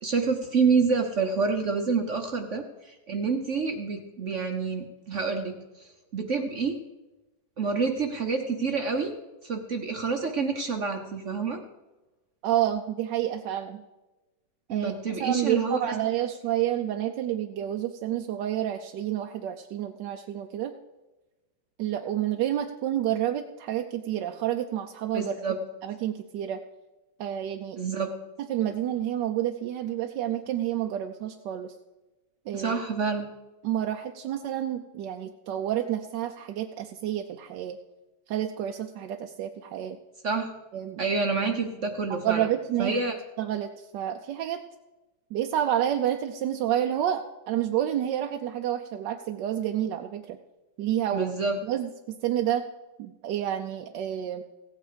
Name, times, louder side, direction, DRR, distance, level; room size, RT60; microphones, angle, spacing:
voice 1, 0.0-6.8 7.6-9.1 9.4-11.6 14.7-15.9 25.1-25.6 27.8-28.1 32.5-33.3 40.2-40.5 41.0-42.5 42.8-43.2 51.1-51.6, right 4 dB, 50° right, 5 dB, 0.9 m, -28 dB
voice 2, 12.4-13.8 14.7-20.7 21.8-25.4 25.8-26.6 27.2-27.8 28.5-31.7 32.5-32.7 33.6-37.8 38.3-40.0 40.7-41.0 42.1-43.0 43.4-44.6 45.3-50.4 50.8-51.3 51.6-52.6 53.0-54.4, right 11 dB, 70° right, 5 dB, 1.2 m, -29 dB
16.0 x 8.7 x 5.0 m, 1.1 s
omnidirectional pair, 2.1 m